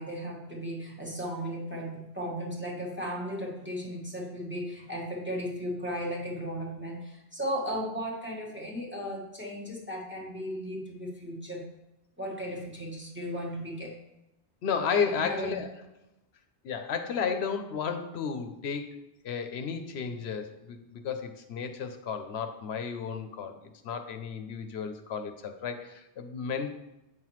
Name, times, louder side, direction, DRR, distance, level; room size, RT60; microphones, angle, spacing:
voice 1, 0.0-11.6 12.2-14.0 15.0-15.6, equal, 10° right, -3 dB, 1.1 m, -36 dB
voice 2, 14.6-15.7 16.6-19.0 19.2-23.6 23.8-26.7, left 6 dB, 80° left, 7 dB, 0.9 m, -33 dB
7.8 x 5.7 x 3.0 m, 0.91 s
omnidirectional pair, 1.1 m